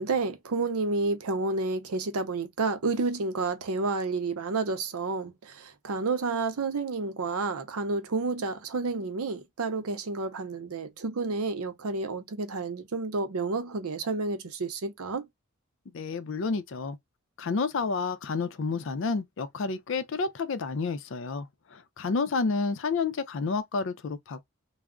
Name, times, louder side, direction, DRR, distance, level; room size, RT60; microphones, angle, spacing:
voice 1, 0.0-15.2, right 3 dB, 80° right, 0.6 m, -30 dB
voice 2, 15.9-17.0 17.4-24.4, left 4 dB, 60° left, 0.4 m, -30 dB
2.2 x 2.0 x 3.6 m
head